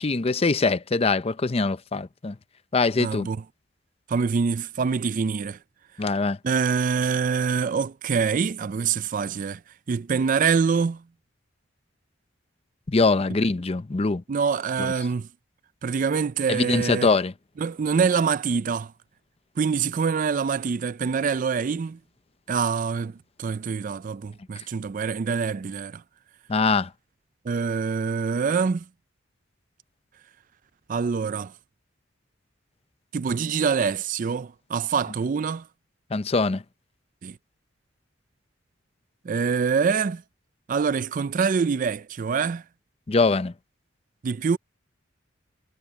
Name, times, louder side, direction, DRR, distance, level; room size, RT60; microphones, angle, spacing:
voice 1, 0.0-2.3 2.7-3.3 6.0-6.4 12.9-14.2 14.8-14.9 16.5-17.3 26.5-26.9 36.1-36.6 43.1-43.5, left 3 dB, 30° left, 0.6 m, -23 dB
voice 2, 3.0-3.4 4.1-5.6 6.4-9.6 9.9-11.0 14.3-15.3 15.8-17.1 17.6-18.9 19.6-22.0 22.5-26.0 27.5-28.8 30.9-31.5 33.1-35.6 37.2-37.4 39.2-40.2 40.7-42.6 44.2-44.6, right 5 dB, 45° right, 0.4 m, -25 dB
head